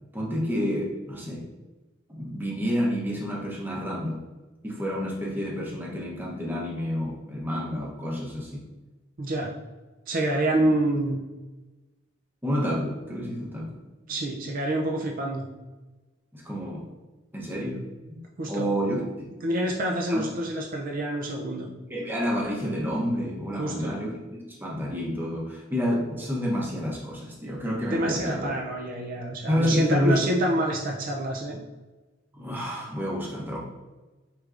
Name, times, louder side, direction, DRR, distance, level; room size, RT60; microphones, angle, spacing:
voice 1, 0.1-1.4 2.1-4.2 4.6-8.6 10.5-10.7 12.4-13.8 16.3-16.9 17.3-17.8 18.1-18.2 18.5-19.3 20.1-20.2 21.9-28.5 29.5-30.2 32.3-33.6, equal, 10° right, -3 dB, 0.8 m, -29 dB
voice 2, 9.2-9.5 10.1-11.2 14.1-15.5 18.4-18.8 19.4-21.7 23.6-24.0 27.9-31.6, right 1 dB, 45° right, 0 dB, 0.4 m, -27 dB
4.7 x 3.3 x 2.4 m, 1.2 s
head